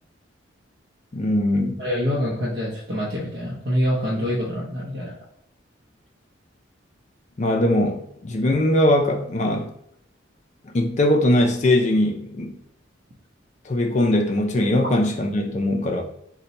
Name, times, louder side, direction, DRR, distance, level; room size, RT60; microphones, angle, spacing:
voice 1, 1.1-1.8 7.4-9.7 10.7-12.5 13.7-16.0, left 1 dB, 35° left, 4 dB, 0.4 m, -21 dB
voice 2, 1.8-5.1, equal, 55° right, -6 dB, 0.6 m, -25 dB
2.7 x 2.2 x 4.0 m, 0.72 s
head